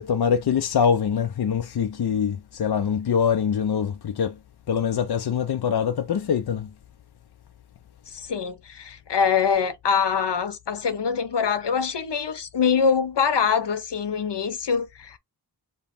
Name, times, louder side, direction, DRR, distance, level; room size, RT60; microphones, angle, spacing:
voice 1, 0.0-4.4 4.7-6.7, left 7 dB, 65° left, 0.6 m, -24 dB
voice 2, 8.1-15.2, left 6 dB, 80° left, 0.9 m, -24 dB
5.2 x 2.2 x 4.3 m
wide cardioid pair, 95°, 42 cm